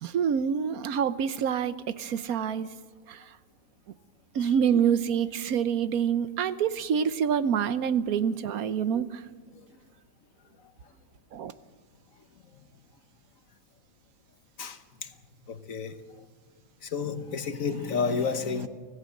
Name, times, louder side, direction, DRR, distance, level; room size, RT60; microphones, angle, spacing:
voice 1, 0.0-2.7 3.1-3.4 4.3-9.3 11.3-11.5, right 8 dB, 85° right, 13 dB, 1.3 m, -27 dB
voice 2, 14.6-15.1 15.5-16.2 16.8-18.7, left 5 dB, 65° left, 9 dB, 1.5 m, -31 dB
25.0 x 17.0 x 6.5 m, 1.5 s
omnidirectional pair, 1.5 m